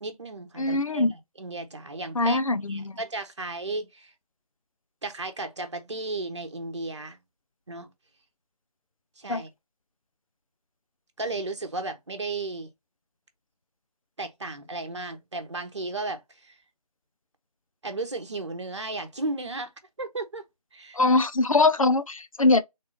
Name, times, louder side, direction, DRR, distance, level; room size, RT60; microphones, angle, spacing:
voice 1, 0.0-2.4 2.7-4.1 5.0-7.2 7.7-7.9 9.2-9.5 11.2-12.7 14.2-16.6 17.8-19.7 20.0-20.4 20.7-21.0, right 2 dB, 45° right, 1.0 m, -34 dB
voice 2, 0.6-1.1 2.2-2.9 9.3-9.4 21.0-22.6, left 3 dB, 60° left, 0.5 m, -22 dB
3.6 x 2.7 x 4.0 m
figure-of-eight pair, 165°, 20 cm